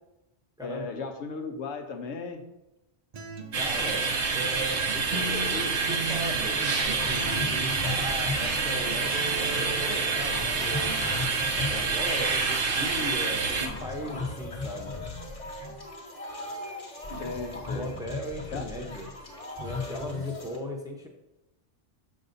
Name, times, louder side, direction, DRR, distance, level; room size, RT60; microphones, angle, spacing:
voice 1, 0.6-2.4 17.1-17.9 18.5-18.7, left 4 dB, 80° left, 5 dB, 1.1 m, -36 dB
Acoustic guitar, 3.1-11.1, right 2 dB, 45° right, 0.6 m, -39 dB
voice 2, 3.5-11.0 11.5-14.9 17.7-19.1 19.6-21.1, left 1 dB, 5° right, 1 dB, 0.7 m, -37 dB
sound 1, 3.5-13.7, right 4 dB, 85° right, 1.1 m, -27 dB
sound 2, 6.8-20.6, left 2 dB, 30° left, 1.2 m, -37 dB
6.7 x 6.4 x 2.6 m, 0.93 s
omnidirectional pair, 1.2 m